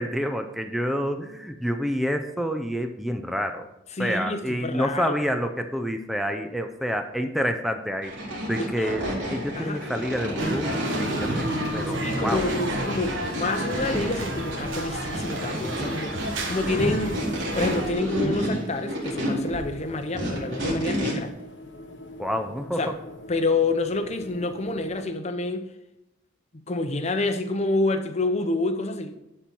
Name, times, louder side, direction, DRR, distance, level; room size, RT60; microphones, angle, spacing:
voice 1, 0.0-3.7 4.0-8.1 8.5-9.0 9.3-11.5 11.7-12.5 22.2-22.9, equal, ahead, 0.5 m, -28 dB
voice 2, 3.9-5.2 8.6-9.0 9.6-9.8 12.0-17.3 17.5-21.3 22.8-22.9 23.3-25.7 26.7-29.2, left 2 dB, 35° left, 0.8 m, -28 dB
sound 1, 8.0-21.1, equal, 65° right, 3.7 m, -30 dB
sound 2, 9.6-25.1, left 2 dB, 70° left, 1.2 m, -43 dB
sound 3, 10.4-17.9, right 1 dB, 90° right, 1.3 m, -31 dB
12.0 x 4.4 x 5.3 m
head